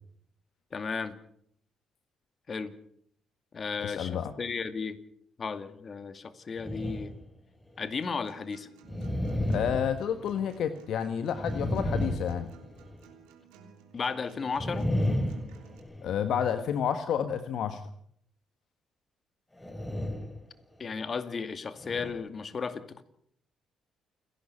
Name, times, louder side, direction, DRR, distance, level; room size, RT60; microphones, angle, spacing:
voice 1, 0.7-1.2 2.5-2.7 3.5-5.0 5.4-7.1 7.8-8.7 13.9-14.9 20.8-23.0, left 5 dB, 45° left, 11 dB, 2.3 m, -34 dB
voice 2, 3.8-4.3 9.5-12.5 16.0-17.8, left 8 dB, 70° left, 9 dB, 1.4 m, -30 dB
sound 1, 6.6-7.3 7.8-7.9 8.9-10.7 11.3-13.0 14.5-16.3 19.6-20.4 20.8-21.0 21.8-22.1, left 1 dB, 15° left, 5.2 m, -32 dB
Acoustic guitar, 7.8-15.8, right 7 dB, 85° right, 3.4 m, -55 dB
29.0 x 11.5 x 8.5 m, 0.66 s
hypercardioid pair, 50°, 0 cm